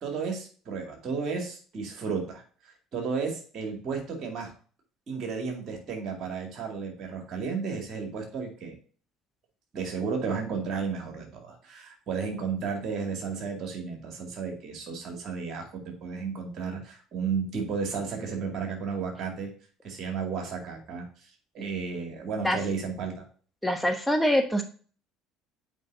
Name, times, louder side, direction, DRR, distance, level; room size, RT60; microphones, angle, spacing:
voice 1, 0.0-4.5 5.1-8.7 9.7-19.5 19.8-21.0 21.5-23.1, right 5 dB, 45° right, 2 dB, 2.2 m, -33 dB
voice 2, 23.6-24.6, equal, 5° left, 4 dB, 1.0 m, -24 dB
7.8 x 5.0 x 2.6 m, 0.41 s
figure-of-eight pair, 60°, 0 cm